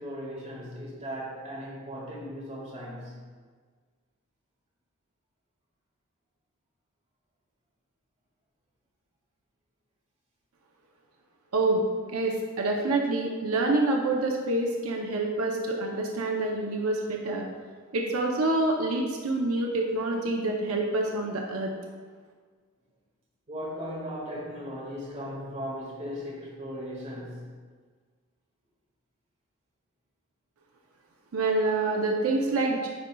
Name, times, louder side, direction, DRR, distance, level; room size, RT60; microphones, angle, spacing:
voice 1, 0.0-3.2 23.5-27.5, equal, 35° right, 1.7 m, -37 dB
voice 2, 12.1-17.4 17.9-21.7 31.3-32.9, right 2 dB, 90° right, 0.6 m, -27 dB
9.4 x 5.1 x 2.3 m
head